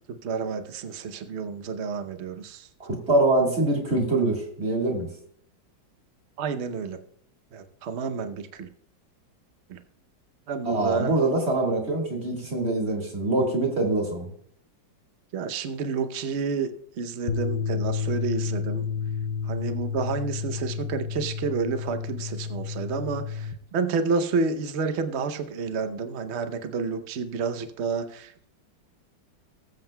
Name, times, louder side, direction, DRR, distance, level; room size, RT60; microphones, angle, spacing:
voice 1, 0.1-2.7 6.4-7.0 7.5-8.7 9.7-9.8 10.5-11.1 15.3-16.7 17.0-18.8 19.4-28.5, right 5 dB, 55° right, 9 dB, 0.7 m, -30 dB
voice 2, 2.8-5.1 10.6-14.3, right 2 dB, 35° right, 1 dB, 2.0 m, -24 dB
sound 1, 17.3-23.5, left 6 dB, 65° left, 0.9 m, -30 dB
20.0 x 7.6 x 2.2 m, 0.66 s
omnidirectional pair, 2.0 m